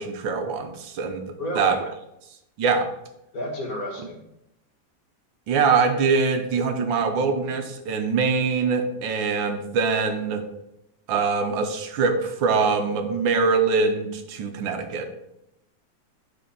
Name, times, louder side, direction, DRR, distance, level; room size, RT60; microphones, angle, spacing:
voice 1, 0.0-1.8 2.6-2.9 5.5-10.4 11.1-15.1, right 5 dB, 80° right, 6 dB, 1.6 m, -23 dB
voice 2, 1.4-1.8 3.3-4.2, equal, 50° left, -1 dB, 2.3 m, -32 dB
9.1 x 4.6 x 5.4 m, 0.84 s
omnidirectional pair, 2.1 m